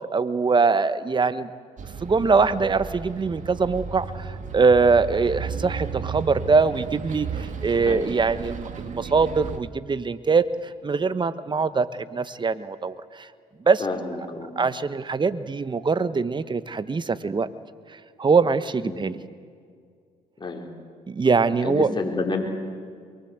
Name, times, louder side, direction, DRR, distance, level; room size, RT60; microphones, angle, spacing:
voice 1, 0.1-1.5 2.0-13.3 13.7-13.8 14.6-17.5 17.9-19.2 21.1-21.9, right 4 dB, 30° right, 14 dB, 1.2 m, -23 dB
Bus, 1.8-9.6, right 6 dB, 55° right, 2.1 m, -34 dB
voice 2, 13.8-14.6 18.8-19.0 20.4-20.7 21.6-22.4, left 3 dB, 30° left, 1 dB, 4.7 m, -29 dB
23.5 x 23.0 x 8.2 m, 2.1 s
supercardioid pair, 65°, 16 cm